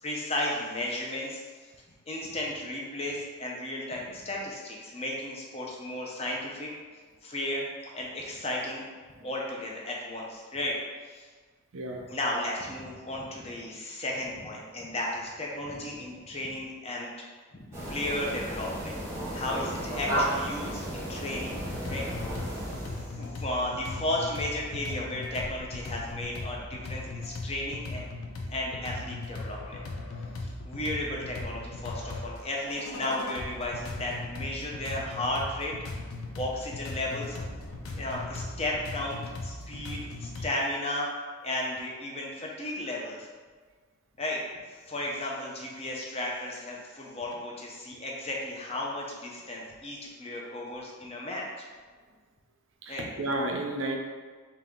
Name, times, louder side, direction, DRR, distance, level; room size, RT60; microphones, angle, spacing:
voice 1, 0.0-1.4 2.1-6.7 7.2-8.8 9.2-10.8 11.1-11.3 12.1-17.1 17.5-19.0 19.3-21.6 21.9-28.1 28.5-29.9 30.4-35.7 36.3-37.4 37.9-41.1 41.4-43.3 44.2-44.4 44.9-51.5 52.9-53.0, left 1 dB, 30° left, -2 dB, 0.6 m, -34 dB
voice 2, 11.7-12.1 24.8-24.9 40.4-40.5 52.8-54.0, right 1 dB, 65° right, 2 dB, 0.5 m, -33 dB
sound 1, 17.7-23.2, equal, 15° right, 1.0 m, -33 dB
sound 2, 21.5-40.5, left 2 dB, 90° left, 0.5 m, -38 dB
3.8 x 2.8 x 3.6 m, 1.5 s
head